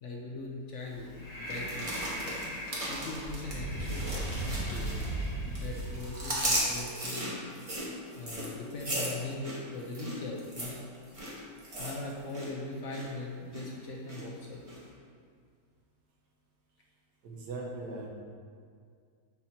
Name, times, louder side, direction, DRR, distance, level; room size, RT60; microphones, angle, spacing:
voice 1, 0.0-2.0 2.9-5.0 5.6-7.3 8.2-10.8 11.8-14.6, left 2 dB, 65° left, -1 dB, 0.7 m, -40 dB
Breathing, 0.8-6.8, right 1 dB, 80° left, 2.0 m, -37 dB
sound 1, 1.5-5.3 5.5-12.5 12.7-13.1 13.5-14.2 14.7-14.8, right 1 dB, 20° right, 1.2 m, -36 dB
voice 2, 17.2-18.1, right 2 dB, 75° right, -2 dB, 1.6 m, -39 dB
7.0 x 3.0 x 5.7 m, 2.2 s
omnidirectional pair, 1.9 m